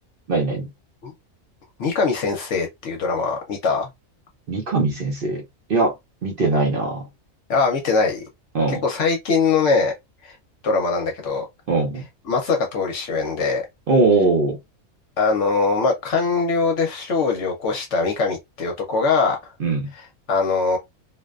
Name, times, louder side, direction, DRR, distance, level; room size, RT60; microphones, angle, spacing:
voice 1, 0.3-0.7 4.5-5.4 5.7-5.9 6.2-7.1 8.5-8.8 11.7-12.1 13.9-14.6 19.6-19.9, right 3 dB, 50° right, 0.7 m, -20 dB
voice 2, 1.8-3.9 7.5-8.2 8.7-9.9 10.2-10.4 10.6-11.5 12.3-13.7 15.2-19.4 20.3-20.8, left 4 dB, 65° left, 0.9 m, -22 dB
2.5 x 2.1 x 2.3 m
omnidirectional pair, 1.4 m